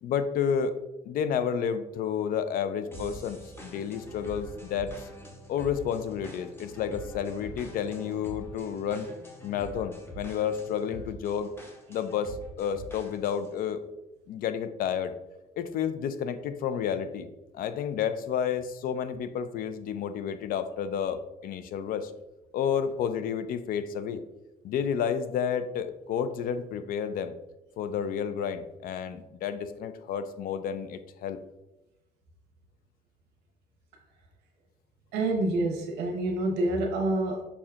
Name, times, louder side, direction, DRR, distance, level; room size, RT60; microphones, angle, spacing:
voice 1, 0.0-0.8 1.0-4.9 5.5-9.1 9.4-11.5 11.9-13.8 14.3-15.1 15.6-17.3 17.5-22.1 22.5-24.2 24.6-27.3 27.8-31.4, left 8 dB, 60° left, 11 dB, 0.4 m, -31 dB
sound 1, 2.9-13.5, equal, 15° left, 0.8 m, -45 dB
voice 2, 35.1-37.4, right 2 dB, 90° right, 2 dB, 0.9 m, -27 dB
6.1 x 2.8 x 2.4 m, 0.97 s
cardioid pair, 110°, 17 cm